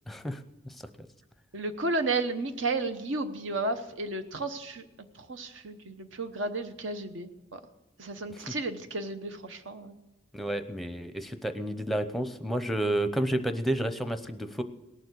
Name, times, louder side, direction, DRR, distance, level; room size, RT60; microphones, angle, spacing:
voice 1, 0.1-0.8 10.3-14.6, right 1 dB, ahead, 9 dB, 0.7 m, -31 dB
voice 2, 1.5-4.8 5.1-7.6 8.0-10.0, right 2 dB, 70° right, 8 dB, 1.0 m, -33 dB
18.0 x 7.1 x 7.9 m, 1.0 s
head